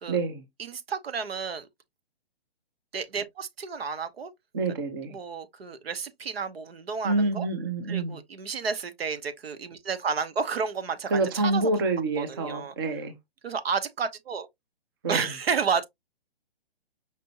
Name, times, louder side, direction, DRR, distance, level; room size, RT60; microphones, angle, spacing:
voice 1, 0.1-0.4 4.5-5.2 7.0-8.2 11.1-13.1 15.0-15.3, right 3 dB, 25° right, 0.6 m, -27 dB
voice 2, 0.6-1.7 2.9-4.3 5.1-7.5 7.9-11.6 12.2-12.7 13.4-14.5 15.1-15.8, right 5 dB, 75° right, 0.9 m, -31 dB
5.2 x 2.6 x 2.7 m
hypercardioid pair, 160°, 30 cm